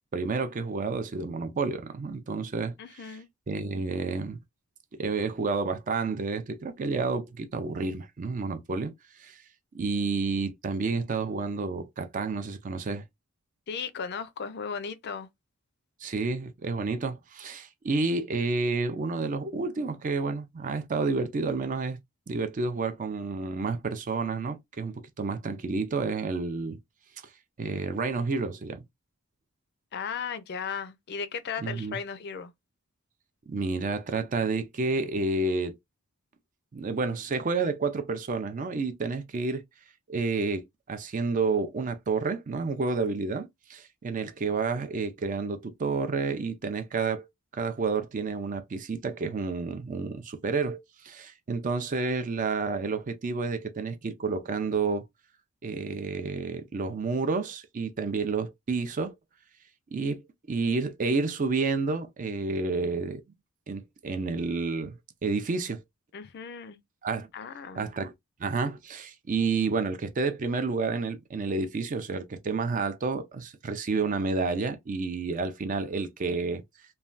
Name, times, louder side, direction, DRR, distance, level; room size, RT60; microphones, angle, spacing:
voice 1, 0.1-3.2 3.5-4.4 5.0-8.9 9.2-9.4 9.7-13.0 16.0-22.0 22.3-26.8 27.6-28.8 31.6-32.0 33.5-35.8 36.7-39.6 40.1-47.3 47.5-55.0 55.6-59.1 59.9-60.2 60.5-63.2 63.7-65.8 67.0-67.3 67.8-68.1 68.4-76.6, right 4 dB, 35° right, 0.4 m, -30 dB
voice 2, 2.8-3.3 13.7-15.3 29.9-32.5 66.1-66.8 67.3-67.9, left 6 dB, 50° left, 0.4 m, -36 dB
3.2 x 2.2 x 2.5 m
head